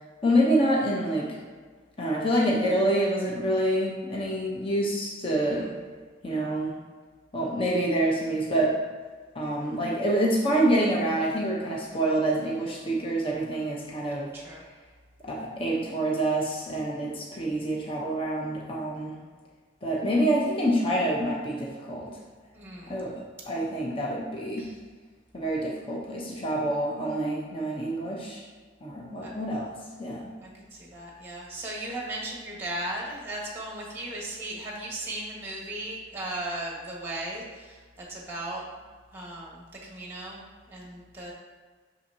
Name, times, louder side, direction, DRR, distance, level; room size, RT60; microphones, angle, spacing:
voice 1, 0.2-1.4 2.0-5.7 6.2-6.7 7.3-8.8 9.4-14.3 15.2-19.2 19.8-22.1 22.9-24.7 25.3-28.4 28.8-29.7 30.0-30.3, right 1 dB, 30° left, -3 dB, 0.8 m, -27 dB
voice 2, 22.5-22.9 24.6-24.8 29.2-29.3 30.4-38.6 39.1-41.3, right 1 dB, 10° right, -4 dB, 1.5 m, -37 dB
6.3 x 5.7 x 2.8 m, 1.5 s
head